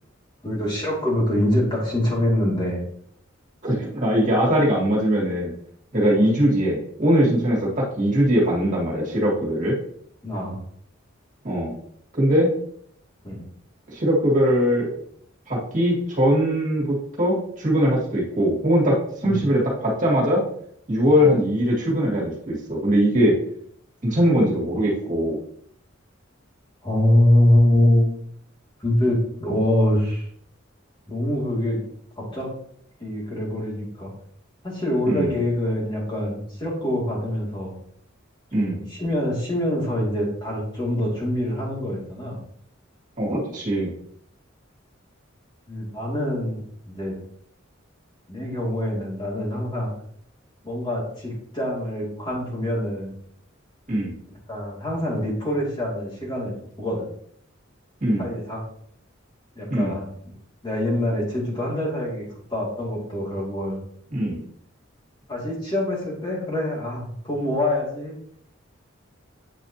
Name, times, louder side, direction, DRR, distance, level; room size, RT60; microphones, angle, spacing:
voice 1, 0.4-2.8 6.1-6.3 10.2-10.6 13.2-13.4 19.2-19.5 21.1-21.3 26.8-28.1 28.8-30.3 31.1-31.8 32.2-32.5 33.0-34.1 34.6-37.7 38.6-42.4 45.7-46.6 46.9-47.2 48.3-49.9 50.6-53.1 54.5-57.1 58.2-58.6 59.5-60.1 60.6-63.8 65.3-68.2, left 1 dB, 25° left, -5 dB, 2.5 m, -24 dB
voice 2, 3.6-5.5 5.9-9.7 11.4-11.7 12.1-12.5 13.9-14.9 15.5-20.4 20.9-23.3 24.0-25.4 35.1-35.4 38.5-38.8 43.2-43.9 53.9-54.1 58.0-58.3 59.7-59.9 64.1-64.4, equal, 40° right, -4 dB, 2.3 m, -21 dB
8.7 x 5.0 x 2.9 m, 0.66 s
head